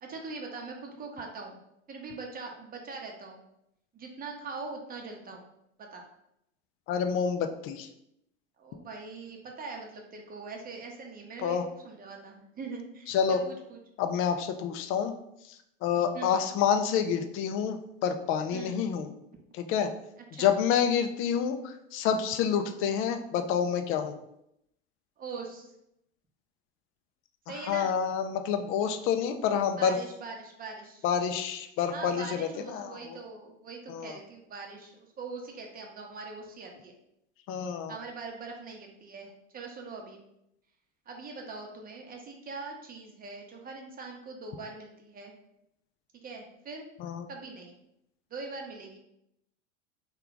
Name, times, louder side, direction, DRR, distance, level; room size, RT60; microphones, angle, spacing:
voice 1, 0.0-1.6 1.9-3.4 3.9-5.5 5.8-6.0 8.6-11.6 11.8-13.8 16.1-16.5 18.5-18.8 20.3-20.5 25.2-25.7 27.5-27.9 29.8-31.0 31.9-37.0 37.9-40.2 41.1-45.3 46.2-46.9 47.3-47.8 48.3-49.0, right 4 dB, 25° right, 1 dB, 0.8 m, -42 dB
voice 2, 6.9-7.9 11.4-11.6 13.1-13.4 14.0-15.1 15.8-19.1 19.5-19.9 20.4-24.2 27.7-30.0 31.0-33.2 33.9-34.2 37.5-37.9 47.0-47.3, left 7 dB, 35° left, 8 dB, 0.4 m, -28 dB
3.2 x 2.4 x 3.8 m, 0.80 s
hypercardioid pair, 85°, 37 cm